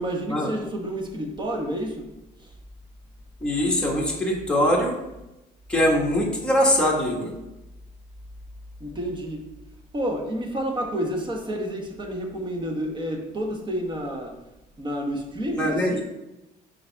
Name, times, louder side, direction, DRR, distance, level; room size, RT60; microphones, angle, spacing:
voice 1, 0.0-2.0 8.8-9.4 9.9-14.3 14.8-16.0, equal, 25° right, 2 dB, 1.3 m, -29 dB
voice 2, 3.4-4.9 5.7-7.3 15.5-16.0, equal, 5° left, -3 dB, 1.7 m, -22 dB
6.4 x 5.2 x 3.6 m, 0.96 s
cardioid pair, 110°, 17 cm